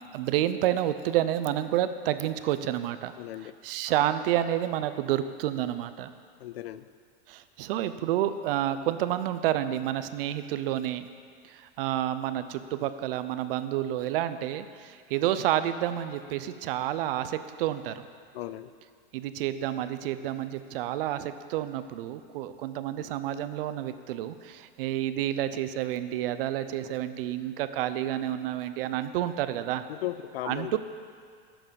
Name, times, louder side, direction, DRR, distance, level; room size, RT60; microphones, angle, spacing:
voice 1, 0.1-3.1 3.6-6.1 7.3-11.1 11.4-18.1 19.1-29.8 30.4-30.8, right 12 dB, 65° right, 12 dB, 0.7 m, -29 dB
voice 2, 3.2-3.6 6.4-6.9 18.3-18.7 29.9-30.8, left 13 dB, 90° left, 13 dB, 0.5 m, -36 dB
11.0 x 7.1 x 5.3 m, 2.1 s
supercardioid pair, 125°, 30 cm